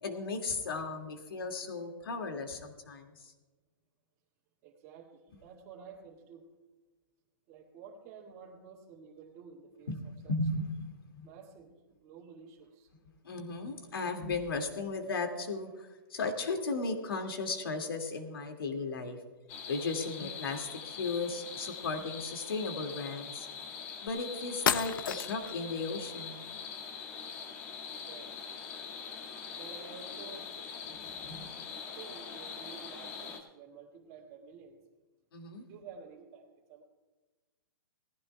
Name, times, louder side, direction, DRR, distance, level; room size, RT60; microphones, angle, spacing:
voice 1, 0.0-3.3 9.9-10.0 10.3-10.9 11.2-11.3 13.2-19.2 19.7-23.5 24.0-26.4 30.9-31.5 35.3-35.6, left 3 dB, 80° left, 4 dB, 2.3 m, -36 dB
voice 2, 4.6-6.5 7.5-10.3 11.2-12.9 27.9-28.4 29.5-30.5 32.0-34.8 35.6-36.8, right 6 dB, 30° right, -6 dB, 2.1 m, -51 dB
sound 1, 19.5-33.4, left 6 dB, 40° left, 2.1 m, -43 dB
sound 2, 24.1-24.2 24.7-25.6, left 8 dB, 65° left, 0.7 m, -31 dB
19.5 x 15.0 x 2.3 m, 1.2 s
hypercardioid pair, 150°, 12 cm